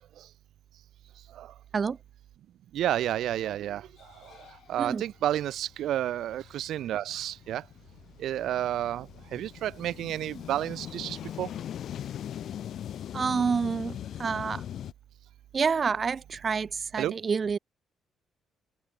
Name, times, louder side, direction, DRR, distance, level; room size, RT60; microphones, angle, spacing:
voice 1, 2.7-3.9 4.2-4.4 4.7-7.6 8.2-9.1 9.3-11.5 17.0-17.1, right 12 dB, 75° right, 1.2 m, -30 dB
sound 1, 3.4-3.5 3.9-14.9, left 10 dB, 70° left, 4.1 m, -41 dB
voice 2, 13.1-14.6 15.5-17.6, right 5 dB, 40° right, 0.4 m, -28 dB
cardioid pair, 90°, 0 cm